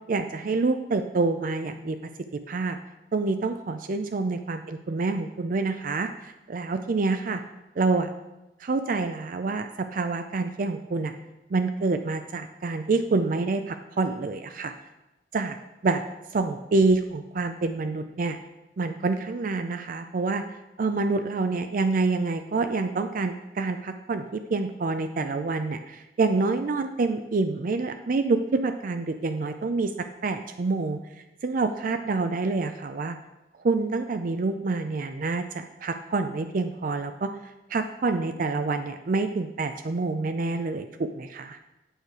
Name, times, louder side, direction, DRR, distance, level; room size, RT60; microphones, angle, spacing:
voice 1, 0.1-2.0 2.5-2.8 3.1-7.4 7.8-8.1 8.6-11.1 11.5-14.7 15.3-15.6 15.8-16.0 16.3-18.4 18.8-20.4 20.8-29.9 30.2-31.0 31.4-33.2 33.6-37.3 37.7-41.6, right 3 dB, 50° right, 8 dB, 0.4 m, -27 dB
9.0 x 6.5 x 4.8 m, 1.0 s
head